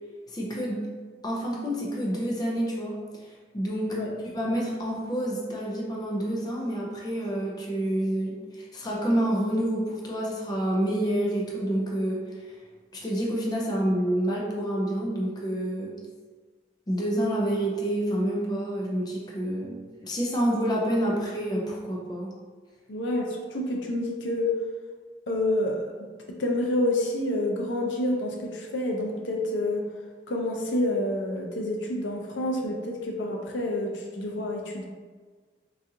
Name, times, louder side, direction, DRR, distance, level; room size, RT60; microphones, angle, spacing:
voice 1, 0.3-0.9 1.2-4.0 4.3-12.6 12.9-16.0 16.9-22.3, right 1 dB, 20° left, -3 dB, 0.5 m, -28 dB
voice 2, 22.9-24.5 25.3-25.9 26.4-29.8 30.3-34.8, left 1 dB, 85° left, 1 dB, 0.5 m, -28 dB
3.9 x 2.5 x 2.7 m, 1.5 s
head